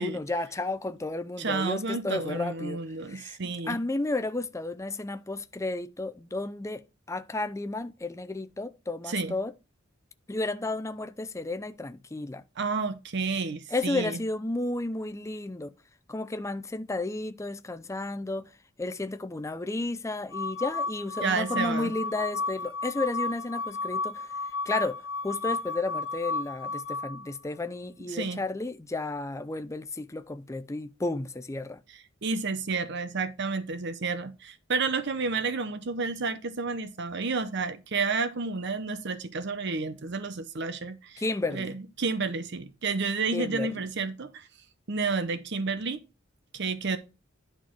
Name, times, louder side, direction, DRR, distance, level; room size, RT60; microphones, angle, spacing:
voice 1, 0.0-2.8 3.1-3.4 3.7-6.8 7.1-9.5 10.3-12.4 13.7-15.7 16.1-18.5 18.8-24.3 24.7-25.0 25.2-31.8 41.2-41.8 43.3-43.7, left 2 dB, 15° left, 0.5 m, -32 dB
voice 2, 1.4-3.8 9.1-9.3 12.6-14.2 21.2-21.9 28.1-28.4 32.2-41.2 41.5-44.5 44.9-46.0 46.5-47.0, right 4 dB, 60° right, 0.8 m, -30 dB
sound 1, 20.3-27.3, left 3 dB, 85° left, 0.8 m, -33 dB
10.5 x 4.4 x 4.5 m
head